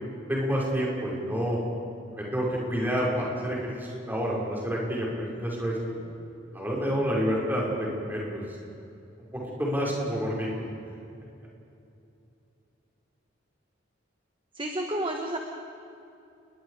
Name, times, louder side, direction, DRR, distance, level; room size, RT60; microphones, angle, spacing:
voice 1, 0.3-1.6 2.1-5.8 6.5-8.4 9.6-10.5, equal, 10° right, -4 dB, 5.9 m, -28 dB
voice 2, 14.6-15.4, right 1 dB, 25° right, 2 dB, 1.5 m, -30 dB
30.0 x 21.5 x 5.1 m, 2.7 s
head